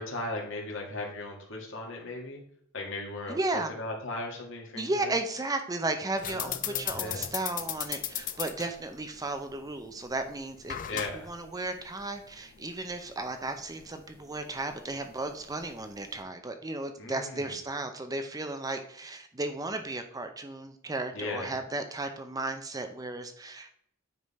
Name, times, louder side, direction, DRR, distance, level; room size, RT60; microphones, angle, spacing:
voice 1, 0.0-2.4 2.7-5.2 6.3-7.3 10.9-11.3 17.0-17.5 21.1-21.5, left 2 dB, 65° left, 0 dB, 1.9 m, -37 dB
voice 2, 3.3-3.7 4.7-23.7, right 2 dB, 20° right, 7 dB, 0.5 m, -34 dB
sound 1, 6.2-16.2, left 10 dB, 40° left, 0.5 m, -39 dB
9.4 x 3.7 x 4.2 m, 0.67 s
head